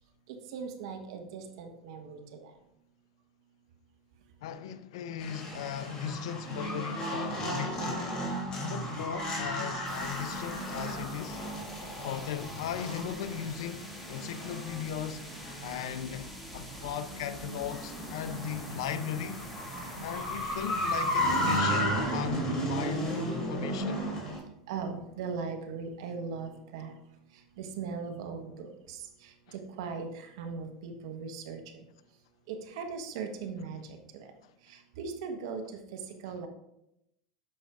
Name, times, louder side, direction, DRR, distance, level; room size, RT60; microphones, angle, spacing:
voice 1, 0.5-2.5 24.7-26.9 27.6-31.8 32.5-34.3 34.7-36.5, right 5 dB, 65° right, 1.3 m, -39 dB
voice 2, 4.4-8.1 8.6-11.4 12.0-15.3 15.6-19.4 20.0-24.0, left 9 dB, 70° left, 0.6 m, -37 dB
sound 1, 5.2-24.4, equal, 30° left, 3.2 m, -34 dB
sound 2, 9.8-21.6, equal, 5° left, 2.3 m, -47 dB
10.0 x 6.3 x 2.5 m
hypercardioid pair, 90°, 3 cm